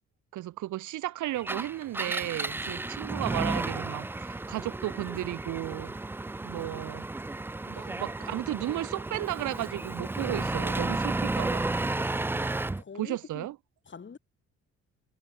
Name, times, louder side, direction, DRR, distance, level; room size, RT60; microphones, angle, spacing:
voice 1, 0.3-5.9 6.4-7.1 7.6-11.7 13.0-13.6, right 15 dB, 80° right, 1.5 m, -34 dB
Engine, 1.4-12.8, right 2 dB, 10° right, 0.3 m, -33 dB
voice 2, 12.8-13.5 13.9-14.2, left 5 dB, 40° left, 6.6 m, -46 dB
cardioid pair, 90°, 30 cm